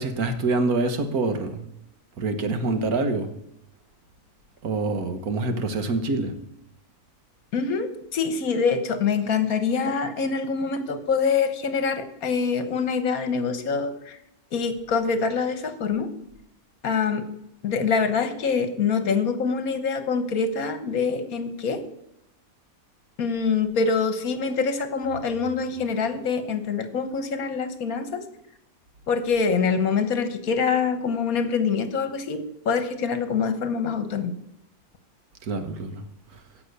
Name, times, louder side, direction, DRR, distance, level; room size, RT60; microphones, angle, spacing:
voice 1, 0.0-1.7 2.2-3.3 4.6-6.3 35.4-36.0 36.3-36.4, right 3 dB, 80° right, 8 dB, 1.7 m, -26 dB
voice 2, 7.5-14.2 14.5-16.1 16.8-17.3 17.6-21.8 23.2-28.2 29.1-34.4, left 5 dB, 75° left, 10 dB, 1.6 m, -25 dB
15.5 x 5.9 x 6.7 m, 0.80 s
omnidirectional pair, 1.5 m